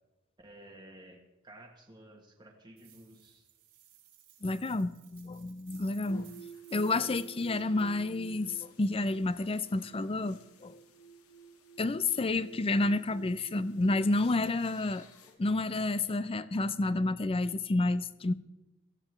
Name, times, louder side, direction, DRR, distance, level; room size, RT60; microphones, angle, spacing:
voice 1, 0.4-3.5, right 1 dB, 20° right, 0 dB, 1.3 m, -53 dB
sound 1, 2.8-7.9, right 11 dB, 85° right, 3.7 m, -59 dB
voice 2, 4.4-6.4 6.7-10.7 11.8-15.0 15.4-18.3, left 2 dB, 25° left, 16 dB, 0.5 m, -30 dB
sound 2, 6.1-15.3, right 5 dB, 80° left, 1.7 m, -51 dB
17.5 x 14.5 x 3.2 m, 1.0 s
head